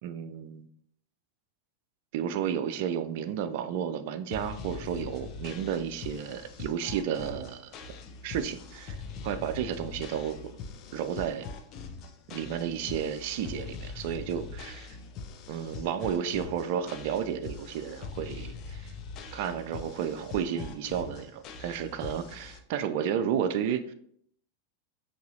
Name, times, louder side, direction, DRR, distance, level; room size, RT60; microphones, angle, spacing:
voice 1, 0.0-0.7 2.1-7.7 8.2-9.0 9.2-10.5 10.9-11.5 12.3-15.0 15.5-18.9 19.3-23.9, right 8 dB, 50° right, 10 dB, 0.3 m, -32 dB
sound 1, 4.3-22.6, left 4 dB, 35° left, 0.5 m, -42 dB
5.4 x 2.9 x 2.6 m, 0.67 s
figure-of-eight pair, 90°, 0 cm